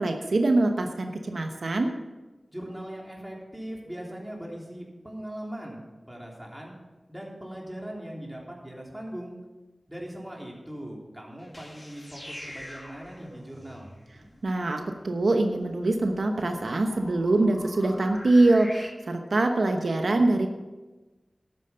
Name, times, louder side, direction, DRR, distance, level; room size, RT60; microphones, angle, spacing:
voice 1, 0.0-1.9 14.4-20.5, right 2 dB, 85° right, 5 dB, 0.9 m, -24 dB
voice 2, 2.5-5.8 6.1-6.7 7.1-9.4 9.9-13.9, right 1 dB, 10° right, -2 dB, 3.3 m, -40 dB
sound 1, 11.4-18.9, left 1 dB, 25° left, 1.7 m, -46 dB
12.5 x 9.0 x 5.6 m, 1.2 s
wide cardioid pair, 65°, 0 cm